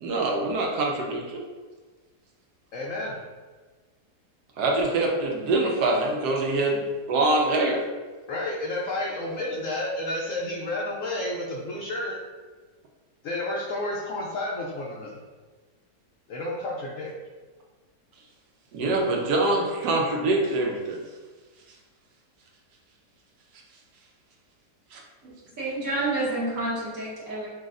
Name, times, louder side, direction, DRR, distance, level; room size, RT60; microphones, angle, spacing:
voice 1, 0.0-1.4 4.6-7.8 18.7-21.0 24.9-25.0, right 2 dB, 80° right, 0 dB, 1.2 m, -24 dB
voice 2, 2.7-3.2 8.3-12.2 13.2-15.2 16.3-17.1, left 1 dB, 65° left, -3 dB, 0.8 m, -31 dB
voice 3, 25.6-27.5, right 2 dB, 55° right, -8 dB, 1.6 m, -28 dB
6.0 x 2.3 x 2.5 m, 1.4 s
omnidirectional pair, 1.7 m